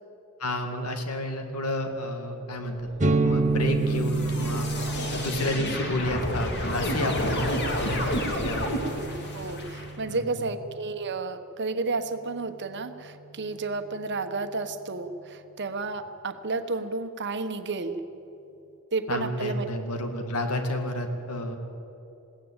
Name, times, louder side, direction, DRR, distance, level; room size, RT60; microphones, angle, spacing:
voice 1, 0.4-4.7 5.1-8.7 10.1-10.5 19.1-21.6, left 1 dB, 90° left, 5 dB, 2.2 m, -31 dB
sound 1, 2.8-9.9, left 1 dB, 50° left, 3.0 m, -31 dB
sound 2, 3.0-10.6, right 3 dB, 35° right, 0.8 m, -30 dB
voice 2, 8.8-18.0 18.9-19.7, right 3 dB, 55° right, 9 dB, 1.2 m, -32 dB
21.0 x 16.5 x 8.9 m, 2.9 s
head